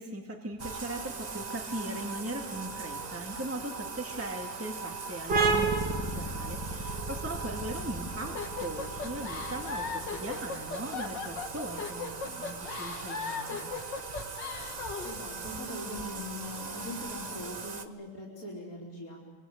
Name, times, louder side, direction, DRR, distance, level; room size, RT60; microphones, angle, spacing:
voice 1, 0.0-13.7, right 1 dB, 10° right, 1 dB, 2.1 m, -39 dB
Bathtub (filling or washing), 0.6-17.9, right 4 dB, 30° right, 0.9 m, -40 dB
sound 1, 5.3-12.6, right 4 dB, 75° right, 3.5 m, -33 dB
sound 2, 8.4-15.2, left 5 dB, 85° left, 2.4 m, -37 dB
voice 2, 15.0-19.3, left 1 dB, 55° left, -5 dB, 4.3 m, -41 dB
25.5 x 24.0 x 8.1 m, 1.4 s
omnidirectional pair, 1.9 m